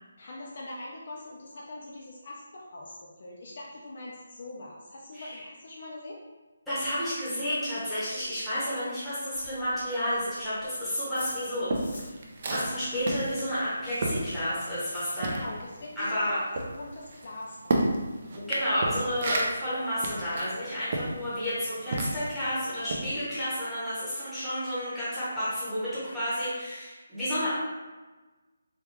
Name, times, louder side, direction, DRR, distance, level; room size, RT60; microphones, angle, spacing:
voice 1, 0.2-6.2 15.2-16.4 16.8-17.9, left 2 dB, 40° left, -3 dB, 0.4 m, -42 dB
voice 2, 6.7-11.7 12.5-15.4 16.0-16.4 18.3-27.5, equal, ahead, -14 dB, 0.8 m, -31 dB
sound 1, 9.3-12.2 12.4-15.7 15.9-16.0 16.3-16.4 16.6-17.1, left 2 dB, 60° left, 0.9 m, -49 dB
sound 2, 11.2-14.9 15.2-22.4 22.9-23.1, right 2 dB, 35° right, 0.4 m, -32 dB
3.4 x 2.3 x 2.9 m, 1.2 s
hypercardioid pair, 175°, 0 cm